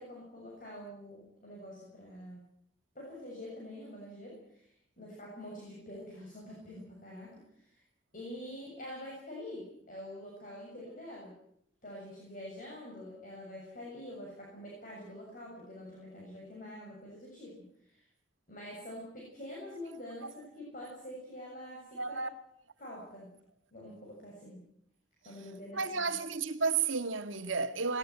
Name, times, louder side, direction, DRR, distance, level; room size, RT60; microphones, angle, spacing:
voice 1, 0.0-2.5 3.0-7.8 8.1-11.3 11.8-18.1 18.5-22.2 22.8-23.3 23.7-24.6 25.2-26.2, left 1 dB, 45° left, 7.1 m, -46 dB
voice 2, 22.0-22.3 25.7-28.0, right 5 dB, 85° right, 1.7 m, -32 dB
20.0 x 18.5 x 9.5 m
head